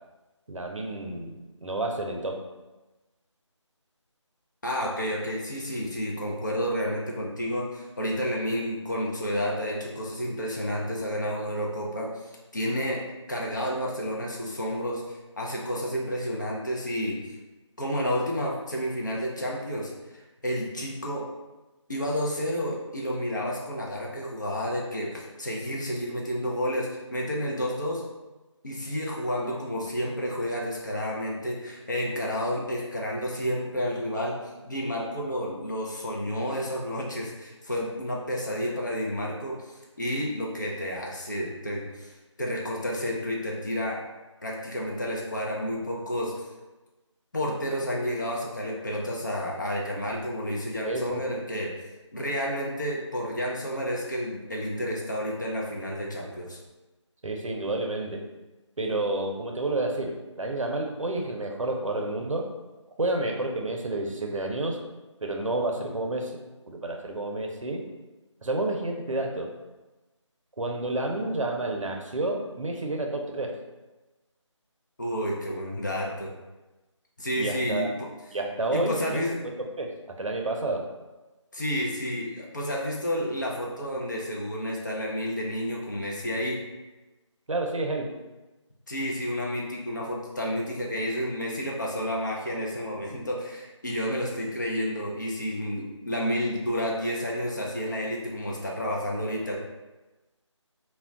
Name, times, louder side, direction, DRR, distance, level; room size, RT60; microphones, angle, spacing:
voice 1, 0.5-2.4 50.8-51.2 57.2-58.2 58.8-62.5 63.0-64.8 65.2-66.4 66.7-67.8 68.4-69.5 70.6-73.5 77.4-77.9 78.3-79.2 79.6-79.9 80.2-80.9 87.5-88.1, right 2 dB, 90° right, 2 dB, 0.6 m, -30 dB
voice 2, 4.6-13.0 13.3-17.2 17.8-21.3 21.9-28.0 28.6-44.0 44.4-46.5 47.3-51.8 52.1-56.6 75.0-76.3 77.2-78.1 78.7-79.3 81.5-86.6 88.9-99.6, equal, 40° left, -3 dB, 0.5 m, -30 dB
2.2 x 2.2 x 3.6 m, 1.1 s
figure-of-eight pair, 160°, 16 cm